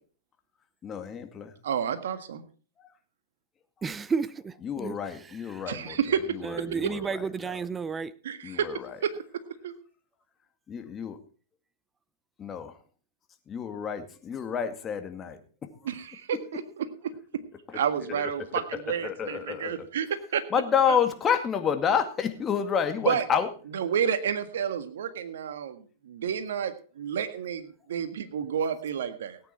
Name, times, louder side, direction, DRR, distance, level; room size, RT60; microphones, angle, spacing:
voice 1, 0.8-1.5 4.6-6.0 6.7-7.2 8.4-8.9 10.7-11.2 12.4-12.7 13.5-15.4 18.1-18.3 19.0-19.8 20.5-23.5, left 7 dB, 25° left, 7 dB, 2.1 m, -29 dB
voice 2, 1.6-2.4 5.7-6.4 8.2-8.7 9.0-9.7 15.8-17.1 17.7-20.4 23.0-23.2 23.7-29.4, right 8 dB, 70° right, 10 dB, 1.6 m, -30 dB
voice 3, 3.8-5.6 6.4-8.2, right 5 dB, 15° right, 18 dB, 0.7 m, -32 dB
17.5 x 9.1 x 4.4 m, 0.39 s
hypercardioid pair, 110°, 0 cm